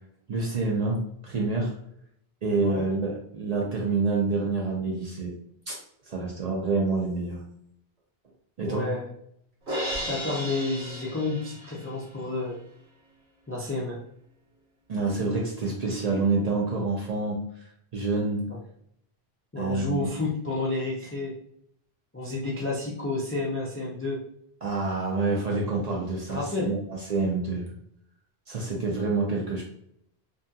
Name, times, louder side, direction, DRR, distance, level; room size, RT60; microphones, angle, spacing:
voice 1, 0.3-1.0 1.2-1.7 2.4-5.3 5.7-5.8 6.1-7.4 8.6-8.9 14.9-17.4 17.9-18.4 19.6-20.1 24.6-27.7 28.5-29.6, right 3 dB, 50° right, -2 dB, 0.5 m, -27 dB
voice 2, 8.6-9.1 9.8-12.6 13.5-14.0 18.5-18.6 19.5-21.3 22.1-24.2 26.3-26.8, left 2 dB, 25° left, -3 dB, 0.3 m, -30 dB
Crash cymbal, 9.7-11.9, equal, 85° right, 1.4 m, -34 dB
2.7 x 2.6 x 2.3 m, 0.72 s
omnidirectional pair, 1.0 m